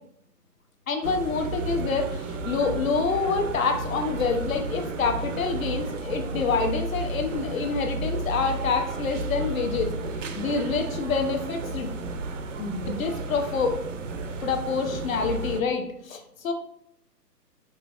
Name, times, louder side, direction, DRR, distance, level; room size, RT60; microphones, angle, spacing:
voice 1, 0.9-9.9 10.3-11.9 12.6-13.8 14.4-16.5, left 4 dB, 55° left, 5 dB, 0.9 m, -27 dB
sound 1, 1.0-15.6, right 2 dB, 50° right, 0.6 m, -32 dB
5.4 x 4.0 x 2.5 m, 0.73 s
hypercardioid pair, 140°, 49 cm